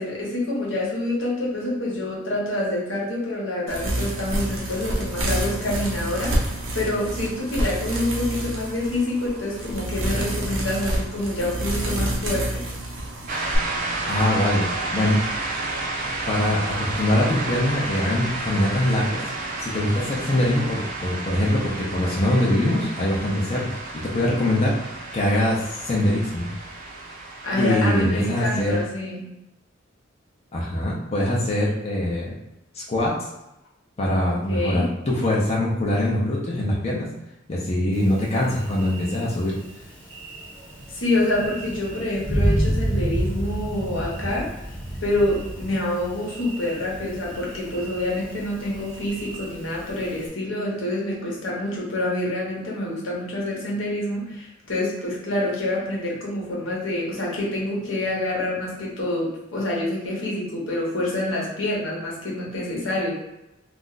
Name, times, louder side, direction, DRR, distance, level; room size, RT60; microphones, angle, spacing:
voice 1, 0.0-12.7 16.0-16.1 27.4-29.3 34.2-34.9 40.9-44.5 45.0-63.1, left 1 dB, 75° left, -4 dB, 0.9 m, -27 dB
sound 1, 3.7-13.6, right 1 dB, 90° right, 0.7 m, -28 dB
sound 2, 13.3-28.8, right 2 dB, 45° right, 0.5 m, -31 dB
voice 2, 14.1-14.6 14.9-15.2 16.3-19.2 19.6-23.8 24.0-26.5 27.6-28.7 30.5-32.3 32.7-33.3 34.0-37.1 37.5-39.6, left 1 dB, 35° left, -4 dB, 0.5 m, -23 dB
Thunder, 37.9-50.3, right 1 dB, 10° left, 0.9 m, -30 dB
2.4 x 2.1 x 3.8 m, 0.90 s
head